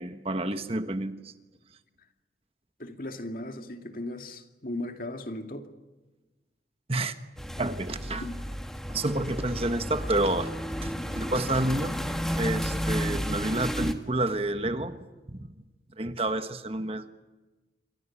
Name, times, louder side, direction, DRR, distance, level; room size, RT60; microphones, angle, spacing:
voice 1, 0.0-1.3 6.9-7.2 7.6-8.3 8.9-10.5 10.8-11.9 12.3-15.0 15.3-15.5 16.0-17.1, right 2 dB, 35° right, 1.4 m, -29 dB
voice 2, 2.8-5.7 8.2-8.4, left 1 dB, 50° left, 2.4 m, -37 dB
sound 1, 7.4-13.9, equal, 5° left, 1.9 m, -32 dB
28.5 x 24.0 x 7.3 m
head